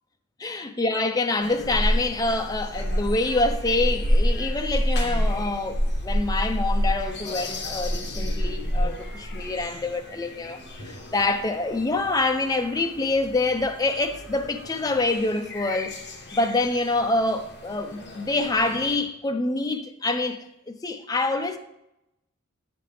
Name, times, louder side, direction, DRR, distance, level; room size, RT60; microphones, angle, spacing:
voice 1, 0.4-15.9 16.3-21.6, left 2 dB, 20° left, 0.5 m, -26 dB
sound 1, 1.4-18.9, equal, 55° left, 1.2 m, -29 dB
8.6 x 5.1 x 3.4 m
head